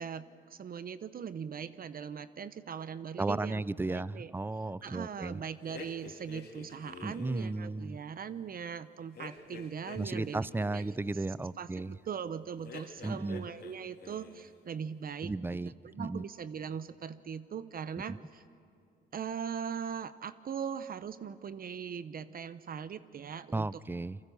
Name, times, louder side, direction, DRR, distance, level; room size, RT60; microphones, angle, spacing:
voice 1, 0.0-4.3 4.8-10.5 10.7-10.9 11.1-11.3 11.6-15.6 15.8-18.4 19.1-23.8, right 7 dB, 45° right, 14 dB, 0.8 m, -40 dB
voice 2, 3.2-5.4 7.0-8.0 10.0-12.0 13.0-13.4 15.2-15.7 16.0-16.2 18.1-18.2 23.5-24.2, right 2 dB, 10° right, 20 dB, 0.5 m, -34 dB
sound 1, 5.7-7.5 9.1-11.0 12.6-13.7 14.0-14.5, left 5 dB, 55° left, 3.5 m, -48 dB
29.5 x 23.0 x 7.0 m, 2.5 s
cardioid pair, 90°, 20 cm